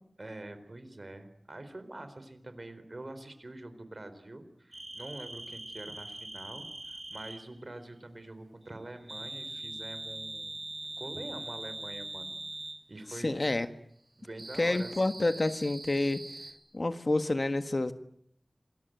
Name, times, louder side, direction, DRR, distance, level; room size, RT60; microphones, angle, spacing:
voice 1, 0.2-10.6 11.0-12.3 12.9-13.3 14.2-14.9, right 2 dB, 50° right, 11 dB, 4.1 m, -45 dB
sound 1, 4.7-7.4 9.1-12.8 14.4-16.5, right 1 dB, 35° right, 6.4 m, -42 dB
voice 2, 13.2-13.7 14.6-16.2 16.7-17.9, left 2 dB, 55° left, 10 dB, 1.6 m, -28 dB
27.5 x 22.0 x 9.2 m, 0.70 s
wide cardioid pair, 60°, 0 cm